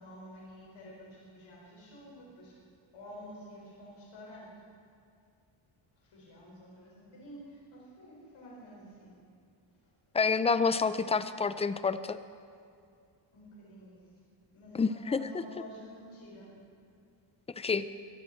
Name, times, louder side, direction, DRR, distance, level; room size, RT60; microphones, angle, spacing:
voice 1, 0.0-2.5 2.9-4.5 6.0-9.1 13.3-14.1 14.5-16.5, equal, 75° left, -5 dB, 5.4 m, -50 dB
voice 2, 10.1-12.2 14.8-15.2 17.6-17.9, left 5 dB, 15° left, 13 dB, 0.4 m, -28 dB
23.0 x 14.0 x 4.4 m, 2.4 s
wide cardioid pair, 155°, 48 cm